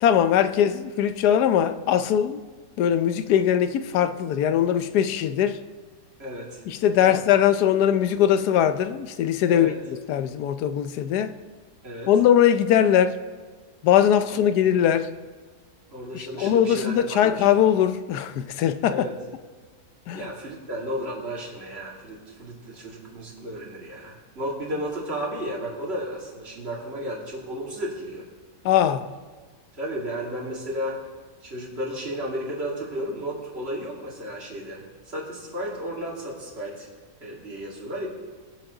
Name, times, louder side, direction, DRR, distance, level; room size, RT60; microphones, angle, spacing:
voice 1, 0.0-2.4 2.8-5.6 6.7-11.4 12.1-13.2 13.8-15.1 16.1-19.1 20.1-20.3 28.6-29.1, left 9 dB, 85° left, 1.2 m, -21 dB
voice 2, 6.2-6.6 7.0-7.2 9.5-9.8 11.8-12.1 14.3-14.4 15.9-17.5 18.9-19.1 20.1-28.2 29.8-31.0 31.4-36.9 37.2-38.1, equal, 40° right, 2.8 m, -33 dB
20.5 x 7.4 x 3.8 m
omnidirectional pair, 1.7 m